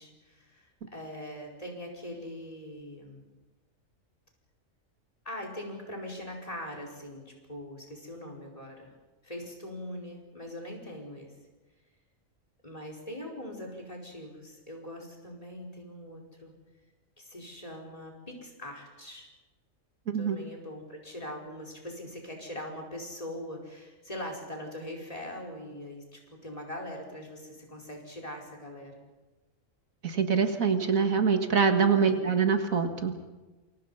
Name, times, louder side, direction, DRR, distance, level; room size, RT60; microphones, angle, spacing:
voice 1, 0.0-3.2 5.2-8.9 9.2-11.3 12.6-16.5 17.2-19.3 20.2-29.0 31.9-32.3, left 1 dB, 25° left, 2 dB, 5.0 m, -42 dB
voice 2, 20.1-20.4 30.0-33.2, right 6 dB, 85° right, 6 dB, 2.2 m, -25 dB
28.0 x 24.0 x 5.7 m, 1.2 s
omnidirectional pair, 1.4 m